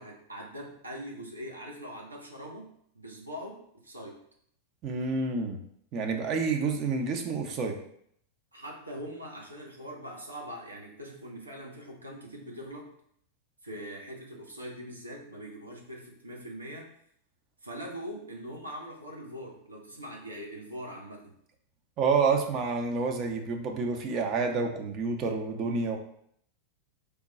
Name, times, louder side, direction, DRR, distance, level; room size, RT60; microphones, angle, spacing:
voice 1, 0.0-2.7 2.9-4.2 8.5-12.9 13.6-16.9 17.6-21.3, equal, 80° right, -2 dB, 0.8 m, -42 dB
voice 2, 4.8-5.6 5.9-7.8 22.0-26.0, right 4 dB, 35° right, 3 dB, 0.5 m, -28 dB
3.4 x 2.2 x 3.9 m, 0.68 s
figure-of-eight pair, 90°, 0 cm